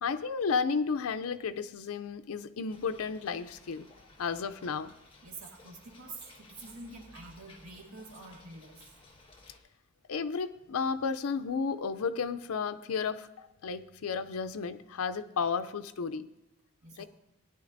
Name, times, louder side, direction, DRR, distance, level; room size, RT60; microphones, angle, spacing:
voice 1, 0.0-3.9 4.2-4.9 10.1-16.3 17.0-17.1, left 5 dB, 80° left, 11 dB, 0.5 m, -33 dB
sound 1, 2.7-9.6, left 2 dB, 25° left, 1.4 m, -57 dB
voice 2, 5.2-8.9 16.8-17.1, right 2 dB, 80° right, 0 dB, 1.9 m, -47 dB
17.0 x 10.0 x 2.6 m, 0.96 s
head